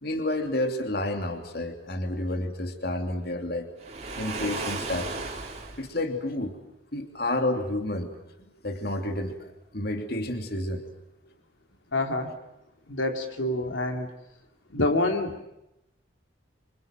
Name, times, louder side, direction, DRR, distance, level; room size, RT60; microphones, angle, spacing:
voice 1, 0.0-3.7 4.2-5.2 5.8-6.6 6.9-8.2 8.6-9.5 9.7-10.8, left 1 dB, 55° left, 5 dB, 3.1 m, -30 dB
Waves surf, 3.8-5.9, right 3 dB, 35° right, 3.6 m, -34 dB
voice 2, 11.9-12.4 12.9-14.1 14.7-15.4, left 2 dB, 85° left, 4 dB, 3.0 m, -27 dB
27.5 x 26.5 x 7.6 m, 0.87 s
head